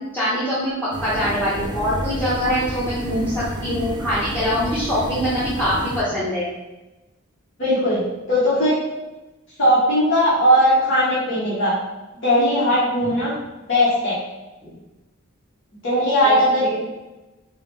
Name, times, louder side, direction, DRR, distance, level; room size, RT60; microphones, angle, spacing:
voice 1, 0.1-6.5 16.2-16.8, equal, 10° left, -11 dB, 0.8 m, -23 dB
sound 1, 0.9-6.0, right 1 dB, 20° right, 0.3 m, -30 dB
voice 2, 7.6-8.8 9.6-11.7 12.1-13.3 13.7-14.1 15.8-16.6, equal, 65° left, -8 dB, 1.1 m, -18 dB
4.7 x 2.1 x 3.3 m, 1.1 s
head